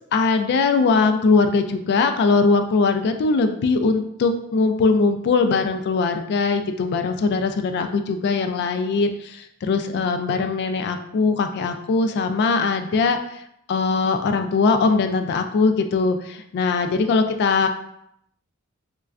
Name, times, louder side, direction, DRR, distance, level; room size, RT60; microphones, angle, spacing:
voice 1, 0.1-13.2 13.7-17.7, left 4 dB, 50° left, 8 dB, 0.3 m, -21 dB
4.1 x 2.2 x 2.4 m, 0.76 s
head